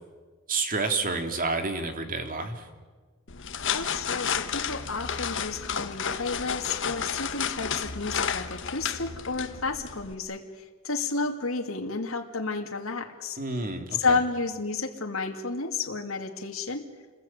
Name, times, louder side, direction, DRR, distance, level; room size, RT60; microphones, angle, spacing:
voice 1, 0.5-2.7 13.4-14.2, right 3 dB, 45° right, 6 dB, 2.9 m, -29 dB
sound 1, 3.3-10.1, left 7 dB, 65° left, 1.4 m, -32 dB
voice 2, 3.7-13.4 13.9-16.8, left 4 dB, 90° left, 2 dB, 2.4 m, -31 dB
28.5 x 20.5 x 8.9 m, 1.4 s
head